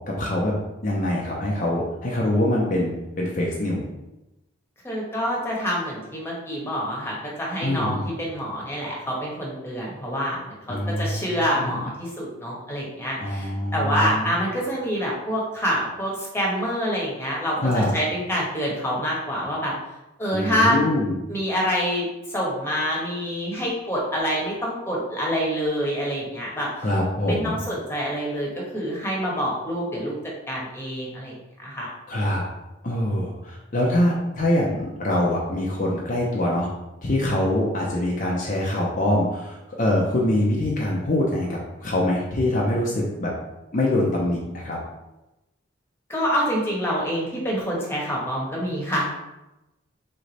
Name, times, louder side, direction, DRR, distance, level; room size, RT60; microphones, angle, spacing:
voice 1, 0.2-0.5 0.8-3.9 7.6-8.1 10.7-11.8 13.2-14.3 17.6-17.9 20.3-21.2 26.8-27.6 32.1-32.4 32.8-36.7 37.0-43.3 43.7-44.8, left 1 dB, 40° left, -4 dB, 0.6 m, -24 dB
voice 2, 4.8-19.7 20.2-20.9 21.3-26.9 27.3-30.1 30.5-31.9 46.1-49.0, equal, 10° left, -4 dB, 1.1 m, -26 dB
3.7 x 3.3 x 3.9 m, 0.97 s
head